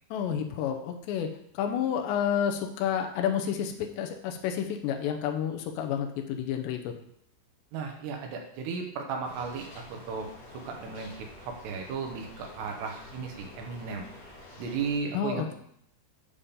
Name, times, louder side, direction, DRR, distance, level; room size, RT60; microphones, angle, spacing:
voice 1, 0.1-1.3 1.5-6.9 15.1-15.5, left 8 dB, 85° left, 4 dB, 3.0 m, -30 dB
voice 2, 7.7-10.3 10.7-11.1 11.4-14.1 14.6-15.5, right 5 dB, 80° right, 2 dB, 3.1 m, -35 dB
sound 1, 9.2-15.0, left 2 dB, 60° left, 2.7 m, -48 dB
8.5 x 3.7 x 6.9 m, 0.71 s
omnidirectional pair, 5.0 m